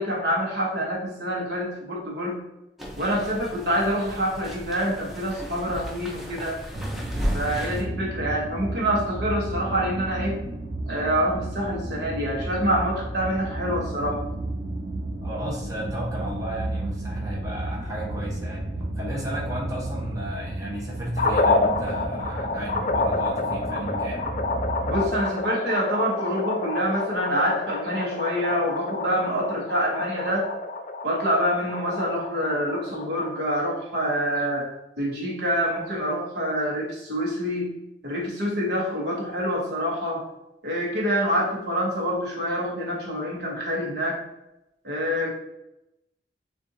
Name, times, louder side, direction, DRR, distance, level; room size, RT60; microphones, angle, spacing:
voice 1, 0.0-2.4 3.0-6.6 7.3-10.4 10.9-14.2 24.9-30.5 31.0-34.7 35.0-37.7 38.0-40.2 40.6-44.2 44.8-45.3, equal, 60° right, -2 dB, 1.1 m, -26 dB
sound 1, 2.8-7.8, equal, ahead, 0.7 m, -34 dB
sound 2, 6.7-25.1, right 1 dB, 80° right, 0.7 m, -33 dB
voice 2, 15.2-18.7 19.0-24.3, right 1 dB, 20° right, -5 dB, 1.0 m, -34 dB
sound 3, 21.2-33.4, left 3 dB, 45° left, 0.4 m, -28 dB
6.6 x 2.5 x 2.7 m, 0.91 s
head